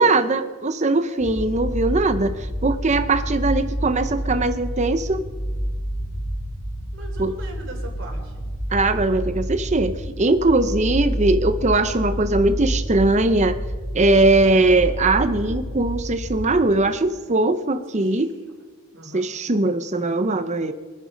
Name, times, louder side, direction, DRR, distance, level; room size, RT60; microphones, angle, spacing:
voice 1, 0.0-5.2 7.2-7.3 8.7-13.6 13.9-18.3 19.1-20.7, right 2 dB, 35° right, 10 dB, 0.7 m, -20 dB
sound 1, 1.2-16.5, equal, 35° left, 2.7 m, -28 dB
voice 2, 6.9-8.4 17.9-18.3 18.9-19.3, right 2 dB, 60° right, 1 dB, 3.7 m, -40 dB
25.0 x 9.5 x 5.2 m, 1.4 s
head